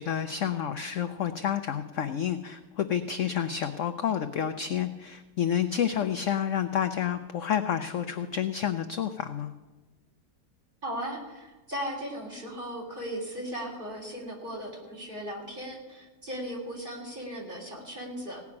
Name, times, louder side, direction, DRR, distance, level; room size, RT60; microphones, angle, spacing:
voice 1, 0.0-9.5, left 9 dB, 65° left, 9 dB, 0.8 m, -29 dB
voice 2, 10.8-18.4, equal, 30° right, -1 dB, 3.5 m, -37 dB
17.0 x 6.0 x 9.6 m, 1.2 s
omnidirectional pair, 1.8 m